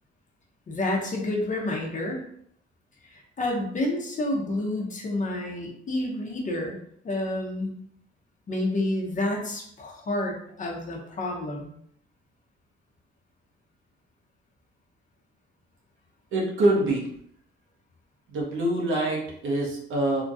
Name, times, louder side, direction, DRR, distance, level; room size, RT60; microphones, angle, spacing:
voice 1, 0.7-2.2 3.1-6.8 7.0-7.7 8.5-11.7, left 1 dB, 40° left, 0 dB, 0.8 m, -29 dB
voice 2, 16.3-17.1 18.3-20.2, right 1 dB, 75° right, -2 dB, 1.0 m, -25 dB
2.9 x 2.4 x 2.7 m, 0.66 s
cardioid pair, 90°, 20 cm